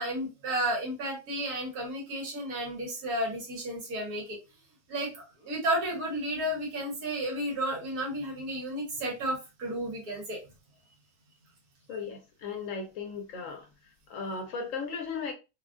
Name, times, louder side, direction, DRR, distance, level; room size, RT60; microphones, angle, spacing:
voice 1, 0.0-4.4 4.9-10.4, right 1 dB, 85° right, 1.7 m, -32 dB
voice 2, 11.9-13.7 14.1-15.3, left 5 dB, 70° left, 0.9 m, -36 dB
3.2 x 2.3 x 2.4 m
omnidirectional pair, 1.6 m